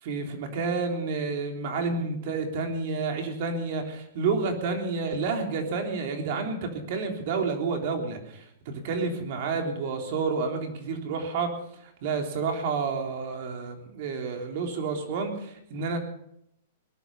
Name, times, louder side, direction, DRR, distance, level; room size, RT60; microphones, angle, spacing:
voice 1, 0.0-16.0, right 4 dB, 50° right, 4 dB, 3.5 m, -30 dB
20.5 x 11.0 x 5.6 m, 0.74 s
hypercardioid pair, 150°, 0 cm